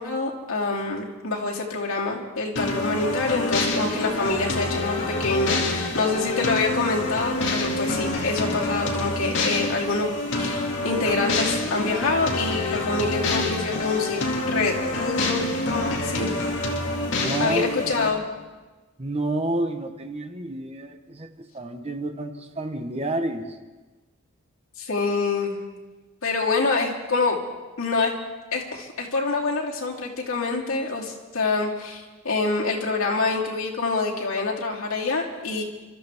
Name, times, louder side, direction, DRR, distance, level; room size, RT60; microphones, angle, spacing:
voice 1, 0.0-10.1 10.4-14.2 14.5-16.3 17.4-18.2 24.8-25.6 26.2-27.4 27.8-28.1 28.5-35.6, left 3 dB, 85° left, -2 dB, 2.7 m, -26 dB
sound 1, 2.6-18.1, left 2 dB, 60° left, 2.3 m, -27 dB
voice 2, 2.7-3.3 17.1-17.7 18.0-18.2 19.0-21.3 21.5-23.6, right 1 dB, 30° right, 6 dB, 1.1 m, -30 dB
29.5 x 13.5 x 3.6 m, 1.2 s
head